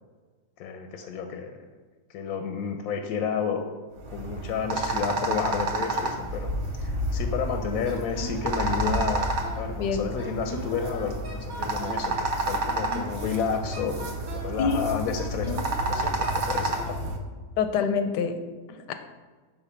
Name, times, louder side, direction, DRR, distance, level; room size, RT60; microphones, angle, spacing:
voice 1, 0.6-1.6 2.1-3.6 4.1-6.5 6.8-9.3 9.6-17.0, left 6 dB, 70° left, 5 dB, 0.9 m, -31 dB
sound 1, 4.0-17.2, right 1 dB, 50° right, 0.9 m, -30 dB
Wind instrument woodwind instrument, 7.8-9.7 10.2-12.1 12.6-14.6 15.2-17.0, right 1 dB, 20° right, 0.9 m, -39 dB
voice 2, 14.6-14.9 17.6-18.3 18.7-18.9, left 6 dB, 90° left, 8 dB, 1.2 m, -26 dB
5.7 x 3.8 x 5.7 m, 1.4 s
omnidirectional pair, 1.8 m